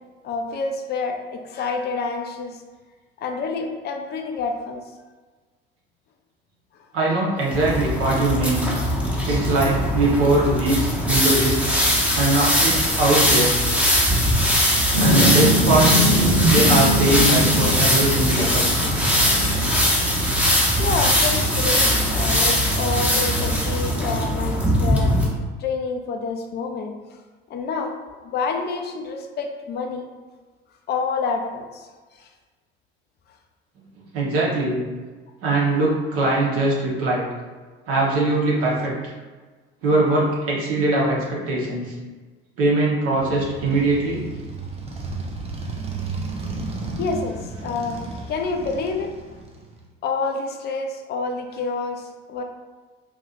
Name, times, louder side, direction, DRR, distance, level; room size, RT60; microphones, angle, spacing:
voice 1, 0.2-2.6 3.2-4.8 14.9-15.0 20.8-25.1 25.6-26.9 27.5-28.0 28.2-30.1 30.9-31.9 47.0-48.0 48.3-49.1 50.0-52.4, left 4 dB, 35° left, 4 dB, 0.6 m, -28 dB
voice 2, 6.9-8.7 9.2-11.6 12.1-13.5 15.0-15.9 16.4-18.6 34.1-34.8 35.4-37.3 37.9-39.1 39.8-41.9 42.6-44.2, right 2 dB, 50° right, -4 dB, 1.3 m, -21 dB
sound 1, 7.5-25.3, equal, 5° right, 1.0 m, -21 dB
sound 2, 14.9-22.2, right 1 dB, 85° right, 0.9 m, -23 dB
Motorcycle, 43.1-49.8, right 3 dB, 20° right, 0.7 m, -33 dB
4.8 x 2.9 x 2.6 m, 1.4 s
figure-of-eight pair, 60°, 30 cm